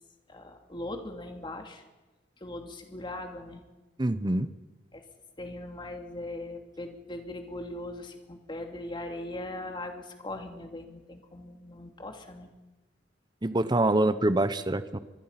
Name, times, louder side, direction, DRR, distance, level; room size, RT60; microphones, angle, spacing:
voice 1, 0.3-1.8 2.4-3.6 4.9-5.0 5.4-12.5, left 1 dB, 25° left, 4 dB, 2.7 m, -40 dB
voice 2, 4.0-4.5 13.4-15.0, right 1 dB, 25° right, 12 dB, 0.8 m, -25 dB
25.0 x 22.5 x 5.8 m, 1.1 s
head